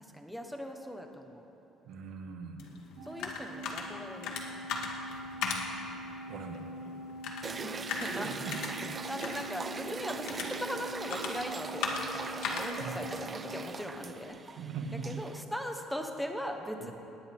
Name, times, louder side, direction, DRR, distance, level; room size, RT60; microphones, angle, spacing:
voice 1, 0.0-1.5 3.0-4.4 7.6-8.3 9.1-14.4 15.0-16.9, equal, ahead, 3 dB, 1.3 m, -40 dB
voice 2, 1.9-2.7 6.3-6.6 8.1-8.6 12.8-13.1 14.6-15.1 16.8-16.9, right 5 dB, 65° right, 3 dB, 1.7 m, -41 dB
sound 1, 2.6-14.3, left 4 dB, 75° left, 2.0 m, -40 dB
Organ, 3.0-14.2, equal, 85° right, 3.7 m, -44 dB
sound 2, 7.4-15.4, right 5 dB, 25° right, 0.5 m, -41 dB
19.5 x 18.0 x 3.7 m, 3.0 s
cardioid pair, 150°, 0 cm